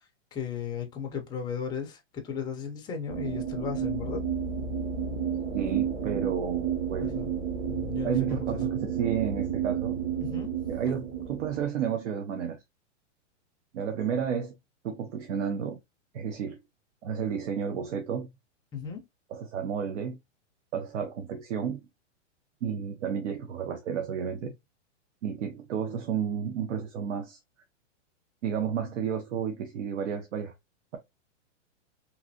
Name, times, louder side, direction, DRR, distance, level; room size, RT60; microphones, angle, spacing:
voice 1, 0.3-4.2 7.0-7.3 7.7-8.6 10.2-10.5 18.7-19.0, left 7 dB, 10° left, 0.4 m, -35 dB
sound 1, 3.1-11.6, right 8 dB, 30° right, 0.8 m, -31 dB
voice 2, 5.5-7.1 8.0-10.0 10.7-12.6 13.7-14.5 14.8-15.8 16.1-16.6 17.0-18.3 19.3-20.2 20.7-21.8 22.6-24.5 25.2-27.4 28.4-30.5, right 7 dB, 70° right, 0.7 m, -31 dB
3.0 x 2.6 x 2.6 m
hypercardioid pair, 140°, 37 cm